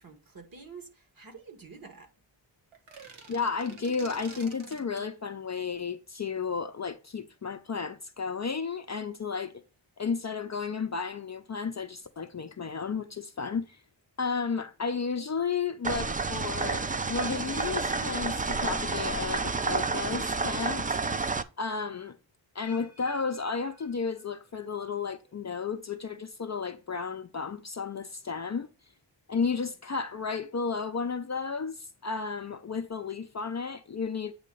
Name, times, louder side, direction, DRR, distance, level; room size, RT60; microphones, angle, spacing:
voice 1, 0.0-2.1, right 5 dB, 45° right, 1.6 m, -48 dB
sound 1, 2.7-5.1, right 4 dB, 90° right, 1.5 m, -48 dB
voice 2, 3.3-9.6 10.0-13.8 14.2-21.0 21.6-22.2 22.5-28.7 29.3-34.3, left 5 dB, 35° left, 0.5 m, -33 dB
sound 2, 15.8-21.4, right 4 dB, 20° right, 0.3 m, -30 dB
sound 3, 17.1-19.1 19.4-19.8 20.5-20.6 22.6-24.6 24.9-25.3 26.0-26.1, left 1 dB, 65° right, 4.6 m, -53 dB
8.4 x 2.9 x 5.3 m
wide cardioid pair, 110°, 47 cm